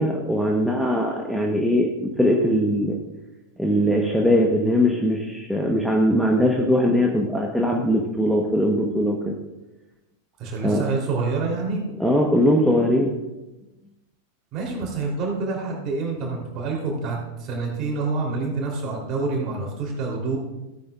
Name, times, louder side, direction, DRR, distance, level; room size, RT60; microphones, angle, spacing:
voice 1, 0.0-3.0 3.6-9.3 10.6-10.8 12.0-13.1, equal, ahead, -1 dB, 1.1 m, -21 dB
voice 2, 10.4-11.8 14.5-20.4, right 3 dB, 35° right, -1 dB, 3.3 m, -27 dB
15.0 x 9.1 x 2.4 m, 1.0 s
figure-of-eight pair, 90°, 0 cm